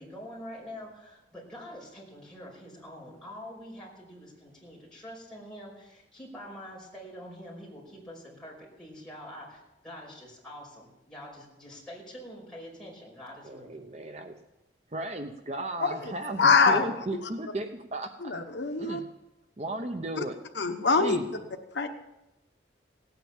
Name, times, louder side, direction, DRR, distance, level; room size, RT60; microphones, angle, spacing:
voice 1, 0.0-13.7, equal, 5° left, -5 dB, 5.4 m, -45 dB
voice 2, 13.4-14.4 14.9-18.4 18.8-19.0 19.6-20.4 20.9-21.4, right 2 dB, 35° right, 6 dB, 0.7 m, -35 dB
voice 3, 15.8-16.1 16.4-16.9 18.2-19.0 20.2-20.3 20.5-21.2 21.7-21.9, left 4 dB, 75° left, 6 dB, 1.0 m, -24 dB
17.5 x 9.2 x 7.3 m, 0.95 s
head